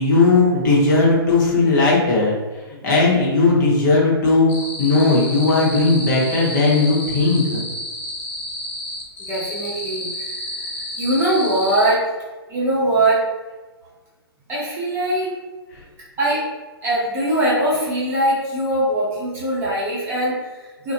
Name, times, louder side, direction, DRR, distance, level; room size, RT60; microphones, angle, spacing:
voice 1, 0.0-2.4 2.8-4.5 4.8-7.6, left 3 dB, 50° left, -4 dB, 0.8 m, -17 dB
sound 1, 4.5-11.9, left 1 dB, 15° left, 0.4 m, -31 dB
voice 2, 9.2-12.0 12.5-13.2 14.5-15.3 16.2-16.4 16.8-20.9, right 1 dB, 20° right, -7 dB, 0.7 m, -21 dB
2.4 x 2.1 x 2.7 m, 1.2 s
hypercardioid pair, 130°, 13 cm